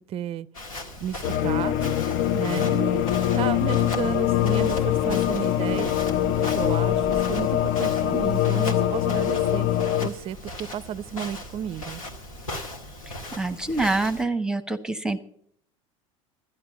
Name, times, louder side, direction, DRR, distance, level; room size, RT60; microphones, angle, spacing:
voice 1, 0.1-0.5 1.0-2.0 2.3-3.1 3.3-6.0 6.5-9.7 10.0-12.0, right 10 dB, 35° right, 0.4 m, -32 dB
Walk footsteps, 0.5-14.2, left 1 dB, 90° left, 1.7 m, -38 dB
sound 1, 1.2-10.1, left 11 dB, 60° left, 0.6 m, -23 dB
sound 2, 3.6-8.5, left 1 dB, 20° left, 1.0 m, -42 dB
voice 2, 13.4-15.2, right 2 dB, 5° right, 0.9 m, -26 dB
12.0 x 10.5 x 6.7 m
hypercardioid pair, 75°, 17 cm